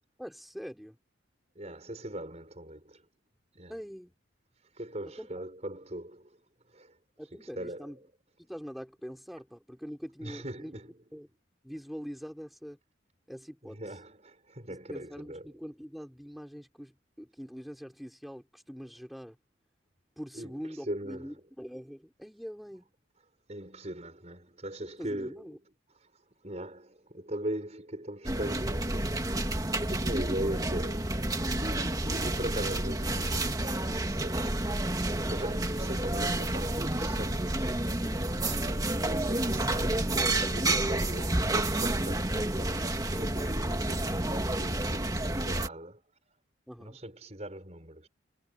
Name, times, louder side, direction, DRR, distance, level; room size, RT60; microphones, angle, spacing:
voice 1, 0.2-1.0 3.7-4.1 5.2-5.4 7.2-8.0 8.4-10.7 11.1-11.3 11.6-12.8 13.3-13.8 14.7-19.4 20.2-22.9 25.0-25.6 38.3-38.6 46.7-47.0, equal, ahead, 4.2 m, -43 dB
voice 2, 1.5-3.1 3.5-3.8 4.7-6.4 6.7-7.0 7.3-7.9 10.2-11.0 13.7-15.5 20.3-21.3 23.5-25.5 26.0-29.2 29.8-34.8 35.3-38.0 38.3-46.0 46.8-48.1, right 1 dB, 35° right, 6.2 m, -40 dB
sound 1, 28.2-45.7, right 1 dB, 20° right, 2.0 m, -30 dB
head